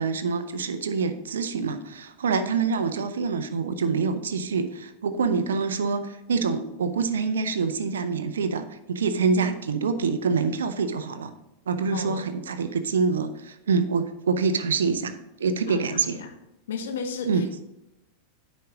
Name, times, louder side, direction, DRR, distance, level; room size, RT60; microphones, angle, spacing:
voice 1, 0.0-11.3 11.7-16.2 17.3-17.5, right 5 dB, 65° right, 10 dB, 0.5 m, -26 dB
voice 2, 11.9-12.3 15.7-16.3 16.7-17.6, left 5 dB, 60° left, 7 dB, 0.8 m, -34 dB
9.4 x 5.1 x 3.9 m, 0.90 s
figure-of-eight pair, 90°, 0 cm